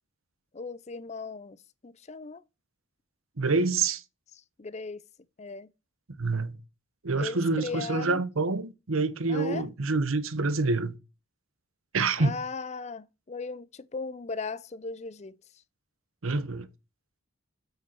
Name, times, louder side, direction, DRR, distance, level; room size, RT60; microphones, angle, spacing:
voice 1, 0.5-1.6 1.8-2.4 4.6-5.0 5.4-5.7 7.2-8.2 9.3-9.6 12.2-15.4, left 4 dB, 35° left, 0.5 m, -37 dB
voice 2, 3.4-4.0 6.2-6.6 7.0-11.0 11.9-12.4 16.2-16.7, right 3 dB, 85° right, 1.0 m, -27 dB
7.9 x 7.8 x 4.4 m
head